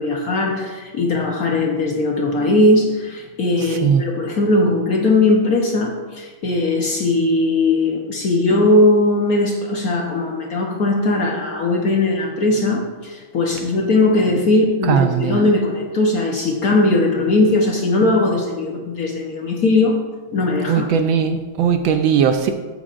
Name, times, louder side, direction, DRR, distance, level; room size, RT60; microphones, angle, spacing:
voice 1, 0.0-20.0 20.3-20.9, left 2 dB, 55° left, 0 dB, 1.1 m, -19 dB
voice 2, 14.9-15.3 20.7-22.5, right 7 dB, 75° right, 7 dB, 1.3 m, -18 dB
12.5 x 8.6 x 2.5 m, 1.4 s
omnidirectional pair, 2.4 m